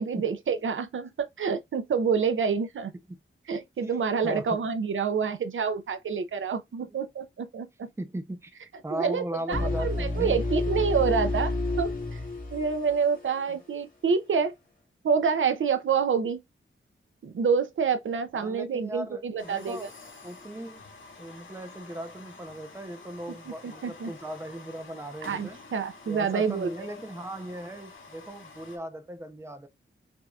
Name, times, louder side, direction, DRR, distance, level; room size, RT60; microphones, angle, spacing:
voice 1, 0.0-2.9 3.5-7.9 8.9-12.2 12.5-14.5 15.0-16.4 17.2-19.8 23.6-24.1 25.2-26.7, right 6 dB, 70° right, 0.6 m, -27 dB
voice 2, 4.2-4.6 6.9-7.0 8.0-8.5 8.8-10.4 13.5-13.6 18.3-19.9 20.2-20.8 21.2-25.6 26.1-29.7, right 1 dB, 10° right, 0.6 m, -38 dB
sound 1, 9.5-13.4, left 2 dB, 40° left, 2.0 m, -30 dB
sound 2, 19.4-28.8, left 3 dB, 70° left, 1.7 m, -48 dB
6.0 x 2.7 x 2.3 m
wide cardioid pair, 150°, 21 cm